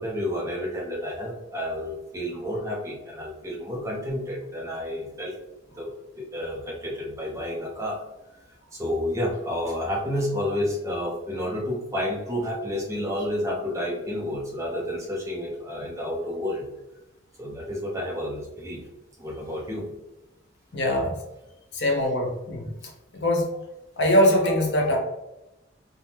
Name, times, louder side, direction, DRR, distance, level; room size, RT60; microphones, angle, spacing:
voice 1, 0.0-5.3 5.7-5.9 6.2-8.0 8.5-16.7 17.4-18.8 19.2-19.9 23.1-23.2, left 1 dB, 15° right, -3 dB, 0.7 m, -30 dB
voice 2, 20.7-21.2 21.7-22.7 23.1-23.6 24.0-25.0, left 1 dB, 55° left, 0 dB, 0.7 m, -22 dB
3.5 x 2.1 x 2.8 m, 0.95 s
head